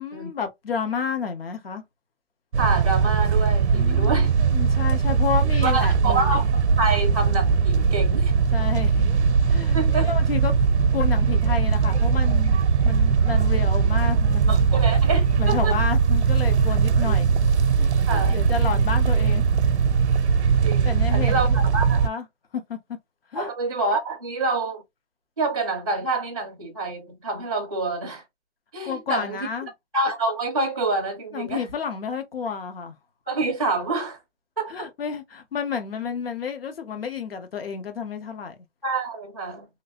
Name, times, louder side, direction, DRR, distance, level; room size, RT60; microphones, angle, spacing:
voice 1, 0.0-1.8 3.7-6.4 8.5-10.6 10.9-14.8 15.4-17.4 17.8-19.5 20.8-21.6 22.0-22.3 22.5-22.8 23.3-23.5 28.8-29.7 31.3-33.0 34.7-38.5, left 6 dB, 60° left, 0.9 m, -31 dB
sound 1, 2.5-22.1, right 5 dB, 80° right, 0.6 m, -20 dB
voice 2, 2.6-4.3 5.6-8.3 9.7-10.1 14.5-15.8 18.1-18.4 20.6-22.1 23.4-24.8 25.4-28.2 28.7-29.4 29.9-31.6 33.3-34.2 34.6-34.9 38.8-39.7, right 3 dB, 20° right, 0.4 m, -27 dB
3.1 x 2.5 x 2.8 m
hypercardioid pair, 160°, 34 cm